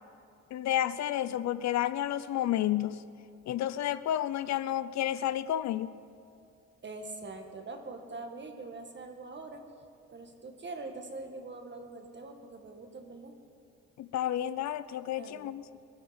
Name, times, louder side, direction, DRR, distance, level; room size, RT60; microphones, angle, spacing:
voice 1, 0.5-3.0 3.5-5.9 14.0-15.6, left 12 dB, 65° left, 15 dB, 0.5 m, -31 dB
voice 2, 6.8-9.6 10.1-13.3 15.2-15.6, right 3 dB, 35° right, 5 dB, 1.7 m, -43 dB
21.0 x 11.5 x 4.3 m, 2.4 s
cardioid pair, 90°, 30 cm